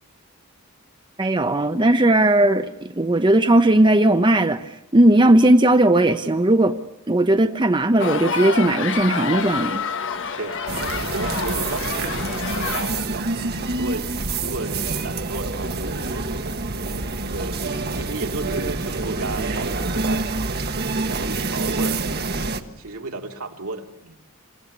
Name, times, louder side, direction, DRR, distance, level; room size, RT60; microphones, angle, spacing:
voice 1, 1.2-4.6 4.9-6.7 7.1-9.8, right 1 dB, 20° right, 7 dB, 0.8 m, -17 dB
sound 1, 8.0-13.0, left 5 dB, 60° left, 1.4 m, -28 dB
voice 2, 10.2-20.7 21.1-24.2, right 2 dB, 80° right, 2 dB, 2.6 m, -34 dB
sound 2, 10.7-22.6, right 3 dB, 50° right, 1.4 m, -27 dB
28.0 x 16.0 x 8.4 m, 0.88 s
head